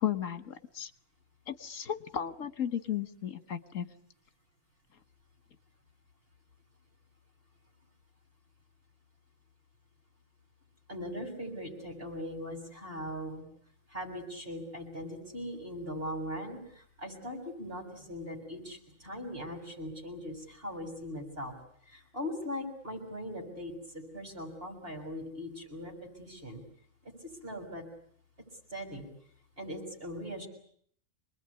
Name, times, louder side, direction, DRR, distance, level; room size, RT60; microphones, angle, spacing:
voice 1, 0.0-0.9 1.5-3.9, left 9 dB, 80° left, 11 dB, 1.7 m, -34 dB
voice 2, 10.9-13.4 13.9-21.5 21.8-25.9 26.2-26.6 27.0-27.1 27.4-27.8 28.7-29.1 29.6-30.5, equal, 50° right, 3 dB, 7.5 m, -40 dB
27.0 x 20.5 x 9.8 m, 0.63 s
omnidirectional pair, 1.3 m